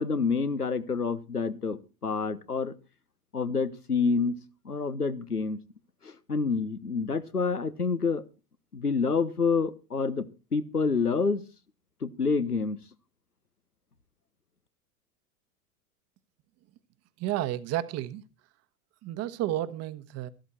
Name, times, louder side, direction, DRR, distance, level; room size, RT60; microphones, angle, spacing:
voice 1, 0.0-2.7 3.3-4.4 4.6-5.6 6.0-8.2 8.7-11.4 12.0-12.8, left 4 dB, 85° left, 1.3 m, -28 dB
voice 2, 17.2-18.2 19.0-20.3, right 14 dB, 35° right, 1.3 m, -31 dB
14.0 x 13.0 x 4.3 m
figure-of-eight pair, 90°, 45 cm